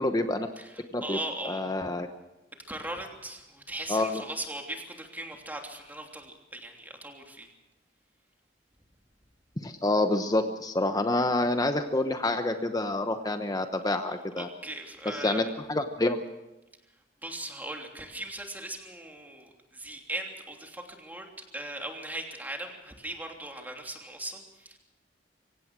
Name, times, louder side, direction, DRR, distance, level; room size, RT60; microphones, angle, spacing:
voice 1, 0.0-0.5 0.9-1.2 1.4-2.1 3.9-4.2 9.6-14.5 15.0-16.2, left 2 dB, 20° left, 7 dB, 0.9 m, -27 dB
voice 2, 0.6-1.6 2.7-7.5 14.4-15.4 17.2-21.3 21.5-24.8, right 1 dB, 10° right, 2 dB, 3.1 m, -39 dB
24.5 x 17.0 x 6.2 m, 1.0 s
head